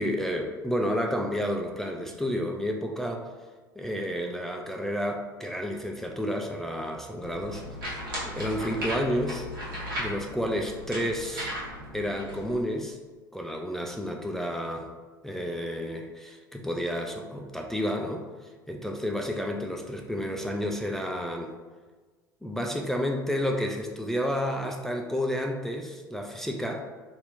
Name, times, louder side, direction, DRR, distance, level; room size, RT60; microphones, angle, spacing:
voice 1, 0.0-3.3 3.8-7.6 8.2-9.5 10.0-11.5 11.9-13.0 13.3-14.9 15.2-18.3 18.7-21.5 22.4-26.8, equal, 5° left, 2 dB, 0.3 m, -30 dB
sound 1, 7.2-12.5, equal, 80° right, 1.1 m, -36 dB
2.8 x 2.6 x 3.4 m, 1.3 s
figure-of-eight pair, 70°, 11 cm